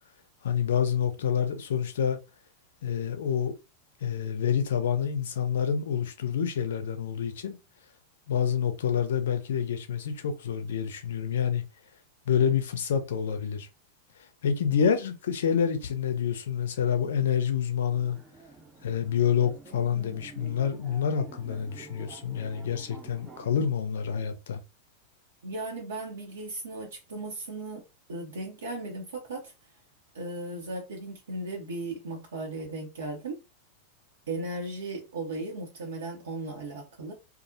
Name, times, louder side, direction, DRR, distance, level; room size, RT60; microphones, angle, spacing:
voice 1, 0.4-2.2 2.8-3.5 4.0-7.6 8.3-11.6 12.3-13.7 14.2-18.2 18.8-24.6, left 8 dB, 60° left, 0.5 m, -27 dB
sound 1, 17.9-23.7, right 3 dB, 25° right, 0.6 m, -49 dB
voice 2, 25.4-27.8 28.1-29.5 30.1-33.4 34.3-37.1, right 2 dB, 65° right, 0.6 m, -36 dB
2.5 x 2.0 x 2.5 m
figure-of-eight pair, 90°, 0 cm